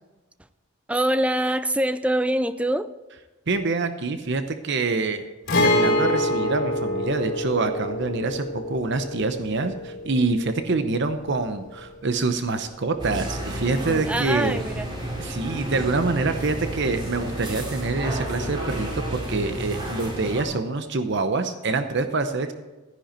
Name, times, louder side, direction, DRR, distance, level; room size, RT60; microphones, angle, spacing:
voice 1, 0.9-2.9 14.0-14.9, right 1 dB, 5° right, 12 dB, 0.4 m, -24 dB
voice 2, 3.5-5.3 5.6-14.6 15.2-22.5, right 3 dB, 60° right, 8 dB, 0.8 m, -26 dB
Guitar, 5.5-13.1 13.4-13.5 15.5-15.6, left 1 dB, 55° left, 4.7 m, -26 dB
sound 1, 13.0-20.4, right 1 dB, 25° right, 3.1 m, -31 dB
14.5 x 10.5 x 4.4 m, 1.1 s
head